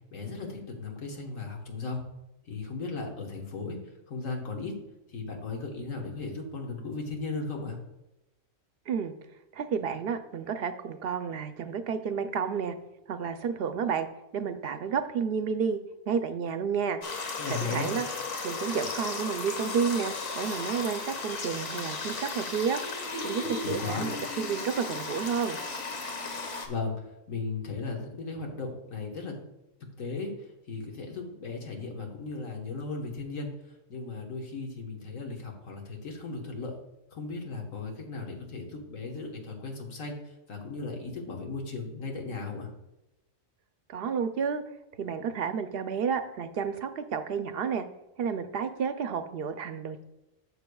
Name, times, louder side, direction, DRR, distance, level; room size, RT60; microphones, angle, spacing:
voice 1, 0.1-2.0 2.4-3.8 4.1-4.7 5.1-7.8 17.4-17.9 23.4-24.1 26.7-29.3 30.0-33.5 33.9-36.8 37.1-42.7, left 3 dB, 80° left, 1 dB, 1.7 m, -36 dB
voice 2, 9.5-12.7 13.1-14.1 14.3-15.8 16.1-17.0 17.7-18.1 18.4-22.8 23.2-25.6 43.9-44.6 45.0-47.9 48.2-50.0, right 6 dB, 55° right, 9 dB, 0.7 m, -31 dB
sound 1, 17.0-26.7, left 4 dB, 65° left, 1.5 m, -35 dB
13.0 x 6.6 x 2.3 m, 0.93 s
omnidirectional pair, 1.4 m